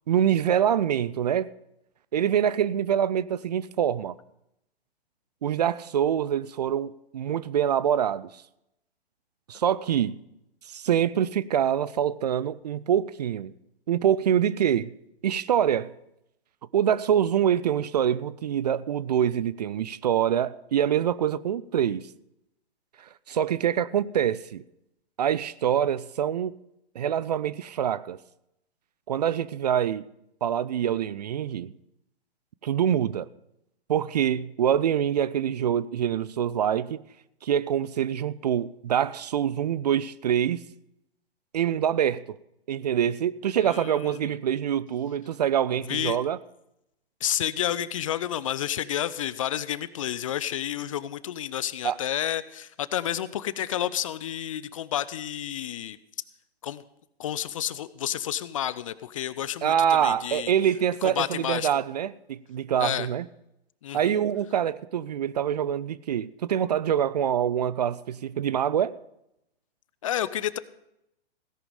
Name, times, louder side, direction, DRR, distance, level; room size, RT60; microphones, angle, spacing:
voice 1, 0.1-1.5 2.1-4.1 5.4-8.4 9.5-10.2 10.7-13.5 13.9-14.9 15.2-15.9 16.7-22.1 23.3-24.6 25.2-26.5 27.0-28.2 29.1-30.0 30.4-31.7 32.6-33.3 33.9-37.0 37.4-40.6 41.5-42.2 42.7-46.4 51.8-52.0 59.6-63.2 63.9-69.0, right 9 dB, 40° right, 0.4 m, -25 dB
voice 2, 43.6-44.3 45.9-46.2 47.2-56.0 56.6-56.8 57.2-60.5 61.0-61.7 62.8-63.1 63.8-64.2 70.0-70.6, left 11 dB, 35° left, 0.4 m, -30 dB
16.5 x 11.0 x 5.0 m
figure-of-eight pair, 125°, 31 cm